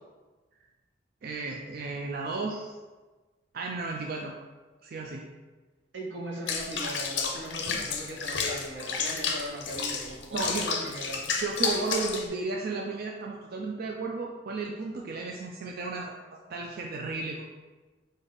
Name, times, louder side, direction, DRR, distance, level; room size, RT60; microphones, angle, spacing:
voice 1, 1.2-2.8 3.5-4.3 4.8-5.3 10.3-10.7 11.4-16.1 16.5-17.4, right 3 dB, 55° right, 0 dB, 0.4 m, -33 dB
voice 2, 5.9-11.2, right 1 dB, 90° right, -2 dB, 1.0 m, -38 dB
Water / Bathtub (filling or washing), 6.5-12.3, left 5 dB, 75° left, 0.6 m, -31 dB
4.9 x 2.6 x 4.0 m, 1.3 s
head